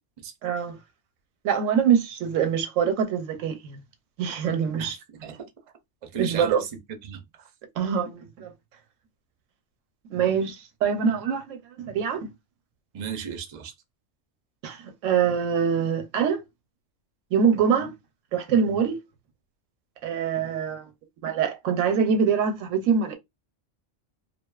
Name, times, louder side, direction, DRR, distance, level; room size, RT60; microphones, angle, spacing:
voice 1, 0.4-0.8 1.4-3.8 4.2-5.0 6.2-6.6 7.8-8.5 10.1-12.3 14.6-16.4 17.3-17.9 18.3-19.0 20.0-20.9 21.2-23.2, right 7 dB, 85° right, 1.0 m, -24 dB
voice 2, 4.8-5.4 6.0-7.5 12.9-13.7, right 8 dB, 50° right, 0.4 m, -35 dB
2.5 x 2.4 x 2.2 m
omnidirectional pair, 1.3 m